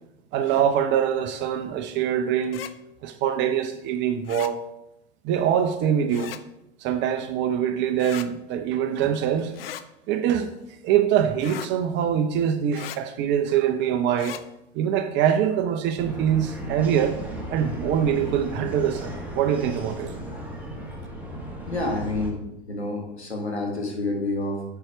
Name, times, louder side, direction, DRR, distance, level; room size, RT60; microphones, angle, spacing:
voice 1, 0.3-2.6 3.0-4.6 5.2-6.3 6.8-9.6 10.1-10.5 10.8-14.4 14.7-17.2 17.5-20.1, right 9 dB, 35° right, 7 dB, 0.7 m, -24 dB
sound 1, 2.4-2.7 4.3-4.5 6.1-6.4 8.0-8.3 9.5-9.9 11.4-11.7 12.7-13.0 14.1-14.4, left 10 dB, 65° left, 0.6 m, -37 dB
sound 2, 16.0-22.3, right 1 dB, 5° right, 1.8 m, -35 dB
voice 2, 21.7-22.4 22.7-24.6, left 2 dB, 85° left, 0 dB, 1.8 m, -28 dB
8.8 x 4.7 x 4.4 m, 0.86 s
figure-of-eight pair, 90°, 32 cm